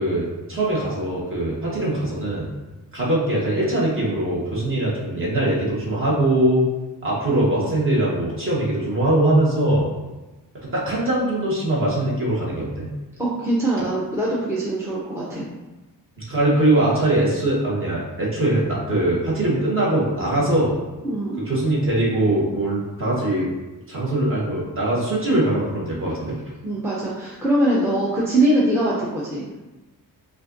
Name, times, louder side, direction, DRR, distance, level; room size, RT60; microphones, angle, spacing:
voice 1, 0.0-2.5 2.9-6.6 7.0-9.9 10.7-12.9 16.3-20.7 21.5-23.5 23.9-26.4, right 1 dB, 35° right, -5 dB, 1.3 m, -21 dB
voice 2, 13.2-15.4 21.0-21.4 26.6-29.5, right 1 dB, 5° right, -6 dB, 0.6 m, -22 dB
5.3 x 2.5 x 2.6 m, 1.1 s
wide cardioid pair, 130°, 37 cm